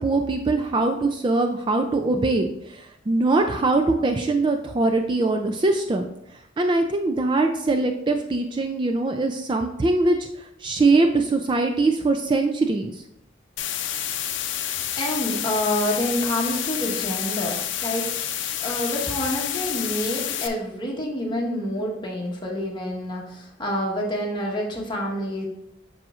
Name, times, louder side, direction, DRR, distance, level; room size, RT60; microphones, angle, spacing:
voice 1, 0.0-6.0 6.6-10.2 10.6-13.0, right 3 dB, 25° right, 5 dB, 0.3 m, -22 dB
sound 1, 13.6-20.5, left 10 dB, 80° left, 0.6 m, -29 dB
voice 2, 15.0-25.5, equal, 25° left, -2 dB, 1.2 m, -28 dB
7.5 x 6.2 x 2.4 m, 0.79 s
head